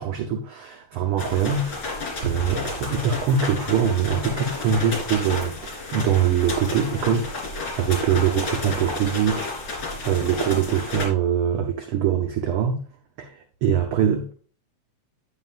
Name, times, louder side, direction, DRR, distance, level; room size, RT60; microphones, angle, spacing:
voice 1, 0.0-12.8 13.2-14.3, right 8 dB, 70° right, 1.4 m, -23 dB
sound 1, 1.2-11.1, left 3 dB, 40° left, 3.9 m, -31 dB
sound 2, 2.2-4.7, right 4 dB, 85° right, 2.8 m, -38 dB
9.6 x 9.3 x 2.4 m
omnidirectional pair, 3.5 m